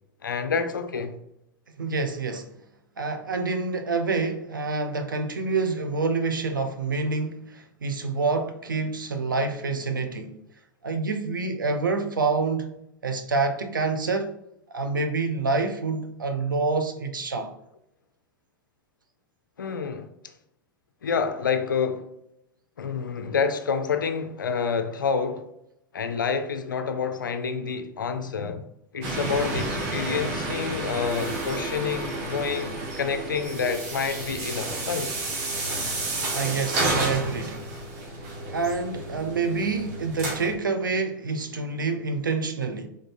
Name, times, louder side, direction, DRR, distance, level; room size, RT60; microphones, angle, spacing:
voice 1, 0.2-1.2 19.6-20.1 21.0-22.1 22.8-25.5 25.9-28.6 28.9-35.1, left 5 dB, 85° left, 0.5 m, -28 dB
voice 2, 1.8-2.5 3.0-10.4 10.8-12.8 13.0-14.3 14.7-17.5 36.3-37.7 38.5-42.9, right 4 dB, 90° right, 0.6 m, -27 dB
sound 1, 29.0-40.5, right 2 dB, 55° right, 1.5 m, -31 dB
3.8 x 3.5 x 2.6 m
hypercardioid pair, 95°, 10 cm